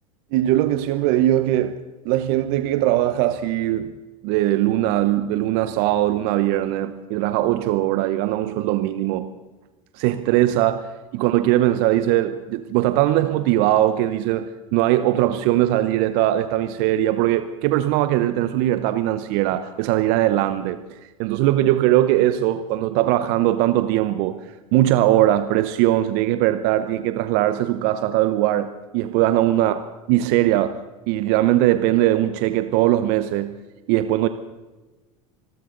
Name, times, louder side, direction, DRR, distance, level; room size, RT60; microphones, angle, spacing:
voice 1, 0.3-1.8 2.0-3.9 4.2-9.3 9.9-24.4 24.7-29.8 30.1-30.8 31.1-33.6 33.9-34.3, right 14 dB, 60° right, 11 dB, 0.9 m, -20 dB
27.0 x 12.5 x 3.9 m, 1.2 s
hypercardioid pair, 95°, 18 cm